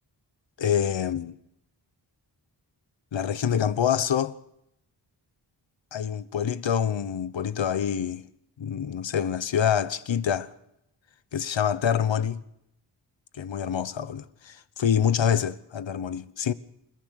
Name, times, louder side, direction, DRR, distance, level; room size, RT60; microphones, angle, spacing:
voice 1, 0.6-1.3 3.1-4.3 5.9-8.2 8.6-10.5 11.3-12.4 13.3-16.5, left 8 dB, 90° left, 1.0 m, -26 dB
28.5 x 14.5 x 6.5 m
wide cardioid pair, 95°, 44 cm